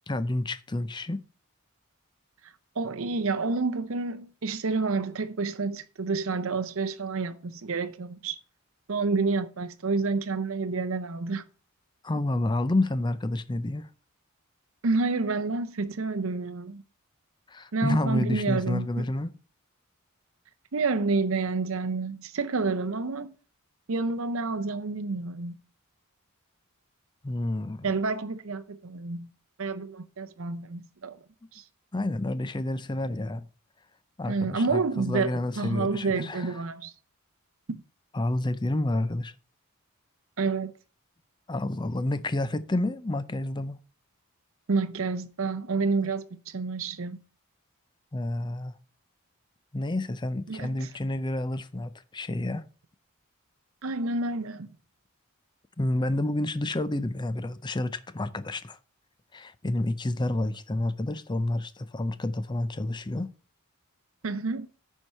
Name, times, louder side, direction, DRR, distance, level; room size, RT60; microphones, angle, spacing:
voice 1, 0.1-1.2 12.0-13.9 17.5-19.3 27.2-27.9 31.9-33.5 34.2-36.5 38.1-39.3 41.5-43.8 46.0-46.1 48.1-48.7 49.7-52.7 55.8-58.8 59.3-63.3, left 1 dB, 20° left, 0.5 m, -29 dB
voice 2, 2.4-8.4 8.9-11.4 14.8-16.8 17.7-19.0 20.7-23.3 23.9-25.5 27.8-29.3 29.6-31.2 31.5-31.6 34.3-36.9 37.7-37.8 40.4-40.7 44.7-47.2 50.5-50.9 53.8-54.7 64.2-64.7, right 4 dB, 65° right, 0.7 m, -29 dB
10.0 x 4.6 x 5.5 m
head